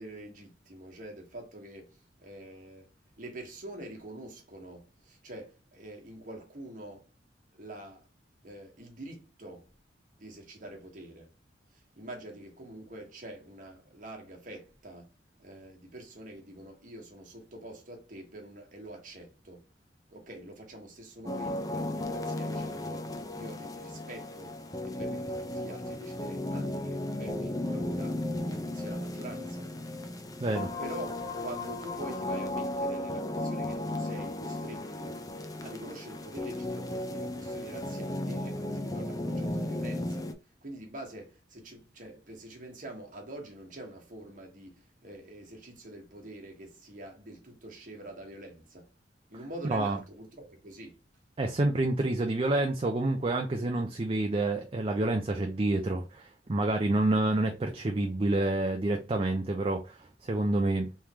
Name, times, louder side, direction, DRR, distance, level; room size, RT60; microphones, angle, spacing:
voice 1, 0.0-7.1 7.5-8.1 8.4-9.7 10.2-11.3 11.7-19.7 20.1-29.7 30.8-35.3 35.6-48.9 49.3-51.0, right 1 dB, 50° right, 1.3 m, -45 dB
sound 1, 21.3-40.3, left 1 dB, 20° left, 0.5 m, -35 dB
voice 2, 51.4-60.9, right 2 dB, 30° right, 0.5 m, -28 dB
3.6 x 3.2 x 2.9 m
head